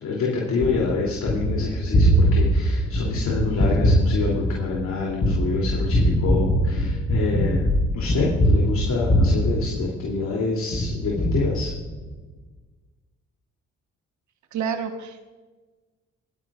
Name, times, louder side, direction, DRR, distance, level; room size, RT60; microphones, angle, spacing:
voice 1, 0.0-7.7 7.9-11.7, left 4 dB, 65° left, -3 dB, 3.2 m, -27 dB
Gunshot gunfire, 0.6-10.3 10.7-12.1, equal, 35° left, 4.4 m, -22 dB
voice 2, 14.5-15.3, right 6 dB, 70° right, 6 dB, 1.3 m, -29 dB
27.0 x 10.5 x 2.5 m, 1.3 s
cardioid pair, 90°, 30 cm